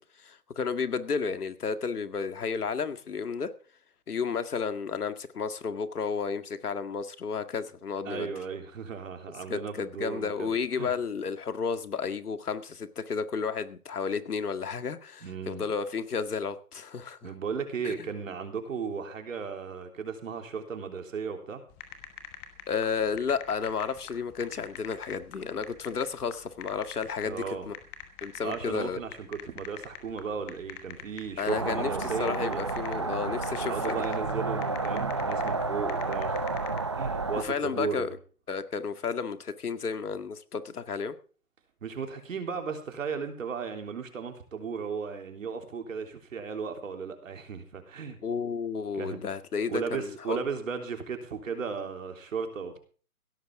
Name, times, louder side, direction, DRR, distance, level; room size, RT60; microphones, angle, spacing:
voice 1, 0.0-3.5 4.1-8.3 9.5-17.2 17.8-18.1 22.7-27.7 28.2-29.0 31.4-34.0 37.4-38.2 38.5-41.2 48.2-50.4, left 5 dB, 85° left, 10 dB, 2.0 m, -32 dB
voice 2, 8.1-10.9 15.2-15.7 17.2-21.6 27.2-27.7 28.4-32.6 33.6-36.6 36.9-38.1 41.8-48.2 48.9-49.2 49.7-52.8, right 6 dB, 60° right, 5 dB, 3.6 m, -35 dB
sound 1, 21.7-36.8, left 10 dB, 10° left, 1.2 m, -45 dB
sound 2, 31.5-37.4, right 3 dB, 20° right, 0.5 m, -31 dB
16.5 x 13.5 x 3.7 m, 0.39 s
hypercardioid pair, 160°, 45 cm